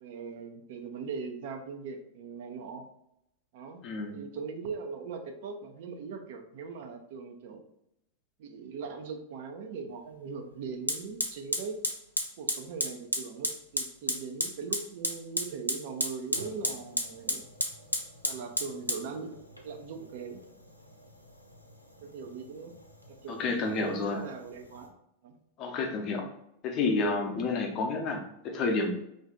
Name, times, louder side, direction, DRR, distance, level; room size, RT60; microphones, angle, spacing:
voice 1, 0.0-2.9 3.5-3.8 4.1-7.6 8.4-11.8 12.4-17.5 18.2-19.4 19.6-20.4 22.0-22.8 23.1-24.9 25.2-25.4, right 5 dB, 50° right, 5 dB, 0.5 m, -40 dB
voice 2, 3.8-4.1 23.3-24.2 25.6-26.2 26.6-28.9, left 3 dB, 35° left, 3 dB, 0.7 m, -30 dB
Fire, 9.9-10.0 10.9-24.9, equal, 90° left, 0.5 m, -35 dB
3.1 x 2.6 x 3.7 m, 0.80 s
figure-of-eight pair, 90°, 0 cm